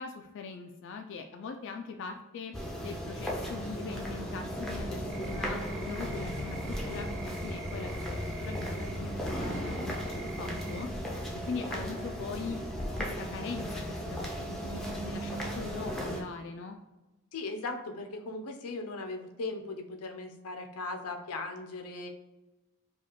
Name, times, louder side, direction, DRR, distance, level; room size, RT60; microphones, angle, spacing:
voice 1, 0.0-10.9 11.5-12.6 13.0-16.8, left 4 dB, 55° left, 4 dB, 0.3 m, -41 dB
sound 1, 2.5-16.2, equal, ahead, 0.5 m, -36 dB
sound 2, 5.1-9.0 9.3-10.9, right 5 dB, 50° right, 0.4 m, -48 dB
voice 2, 17.3-22.1, left 3 dB, 90° left, 5 dB, 0.6 m, -38 dB
4.9 x 2.4 x 3.0 m, 1.1 s
head